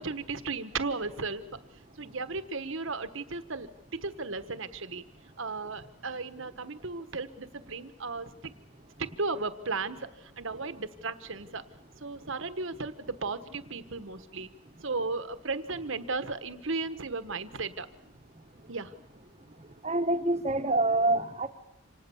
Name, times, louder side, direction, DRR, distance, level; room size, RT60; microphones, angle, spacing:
voice 1, 0.0-1.6 2.0-5.0 5.4-8.5 9.0-11.7 12.0-14.5 14.8-17.9 18.7-18.9, right 3 dB, 60° right, 11 dB, 1.3 m, -35 dB
voice 2, 19.8-21.5, right 2 dB, 30° right, 7 dB, 1.4 m, -26 dB
26.5 x 19.0 x 7.1 m, 0.85 s
head